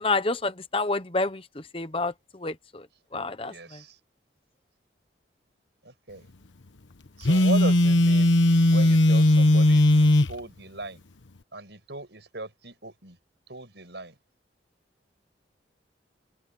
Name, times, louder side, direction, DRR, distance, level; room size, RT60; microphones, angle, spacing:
voice 1, 0.0-2.9 3.1-3.8, left 3 dB, 30° left, 1.0 m, -29 dB
voice 2, 3.4-4.0 5.8-6.3 7.2-8.4 8.7-11.0 11.5-13.2 13.5-14.1, right 2 dB, 65° right, 6.1 m, -37 dB
Telephone, 7.2-10.4, left 1 dB, 85° left, 1.2 m, -18 dB
head